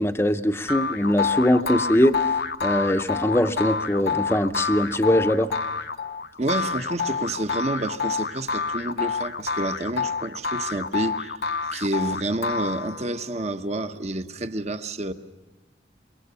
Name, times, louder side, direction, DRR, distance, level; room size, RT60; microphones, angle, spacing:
voice 1, 0.0-2.2 2.6-5.5, left 1 dB, 15° left, 0.7 m, -21 dB
sound 1, 0.7-13.2, left 5 dB, 60° left, 0.8 m, -28 dB
voice 2, 6.4-11.4 11.7-15.1, right 2 dB, 40° right, 1.0 m, -29 dB
25.0 x 22.5 x 6.9 m
head